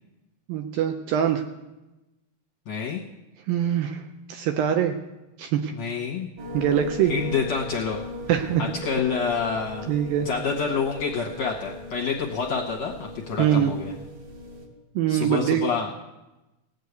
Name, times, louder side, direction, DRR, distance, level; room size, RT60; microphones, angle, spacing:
voice 1, 0.5-1.4 3.5-5.0 5.4-5.7 6.5-7.1 8.3-8.6 9.9-10.3 13.4-13.7 15.0-15.6, right 10 dB, 75° right, 5 dB, 2.2 m, -23 dB
voice 2, 2.7-3.0 5.8-6.3 7.0-8.0 8.6-9.9 10.2-13.9 15.1-15.9, left 5 dB, 70° left, -1 dB, 1.7 m, -28 dB
sound 1, 6.4-14.7, left 1 dB, 50° right, 3.2 m, -38 dB
18.5 x 6.6 x 8.1 m, 1.0 s
omnidirectional pair, 4.7 m